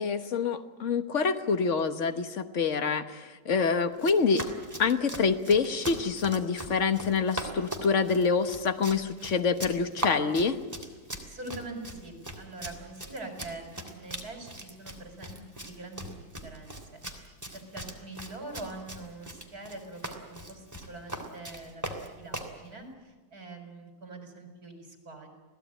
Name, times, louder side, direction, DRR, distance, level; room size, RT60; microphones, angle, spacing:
voice 1, 0.0-4.5 4.8-10.6, left 5 dB, 45° left, 9 dB, 1.5 m, -26 dB
Run, 3.9-22.6, right 1 dB, 10° right, 2.9 m, -40 dB
voice 2, 11.3-25.3, right 2 dB, 55° right, 4 dB, 5.4 m, -44 dB
27.5 x 18.0 x 9.1 m, 1.3 s
omnidirectional pair, 1.9 m